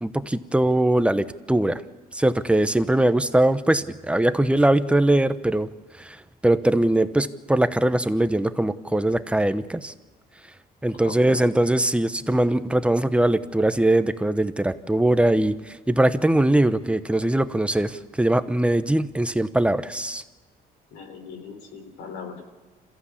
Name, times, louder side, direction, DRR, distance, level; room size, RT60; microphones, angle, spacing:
voice 1, 0.0-1.8 2.1-5.7 6.0-6.2 6.4-9.9 10.8-20.2, right 1 dB, 5° right, 12 dB, 1.0 m, -21 dB
voice 2, 11.0-11.5 20.9-22.4, left 6 dB, 80° left, 5 dB, 4.0 m, -39 dB
27.5 x 15.0 x 8.5 m, 1.2 s
cardioid pair, 110°, 17 cm